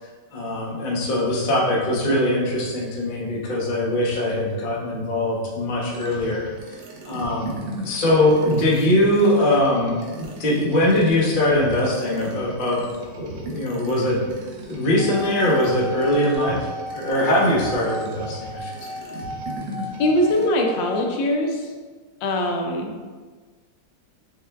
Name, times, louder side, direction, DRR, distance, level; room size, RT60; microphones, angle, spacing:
voice 1, 0.3-6.5 7.0-7.6 7.8-12.8 13.1-14.2 14.7-16.7 16.9-18.7, left 1 dB, 60° left, -3 dB, 0.5 m, -21 dB
sound 1, 5.9-20.4, right 1 dB, 90° right, 1.4 m, -37 dB
sound 2, 14.8-21.0, equal, 65° right, 0.9 m, -35 dB
voice 2, 20.0-21.7 22.2-23.0, left 1 dB, 85° left, 2 dB, 1.4 m, -22 dB
5.7 x 2.2 x 3.3 m, 1.4 s
omnidirectional pair, 2.0 m